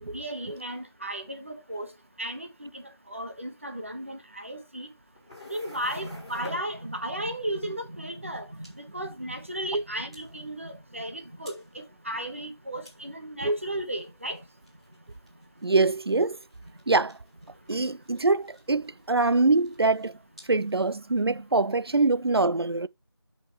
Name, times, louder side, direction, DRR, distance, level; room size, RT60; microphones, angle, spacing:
voice 1, 0.1-1.9 2.2-2.8 3.1-4.9 5.5-14.4, right 1 dB, 30° right, 1.3 m, -35 dB
sound 1, 4.9-21.2, left 1 dB, 15° right, 2.6 m, -54 dB
voice 2, 15.6-16.4 16.9-17.2 17.7-20.2 20.5-22.9, right 3 dB, 70° right, 0.5 m, -24 dB
12.0 x 5.7 x 3.1 m
figure-of-eight pair, 175°, 14 cm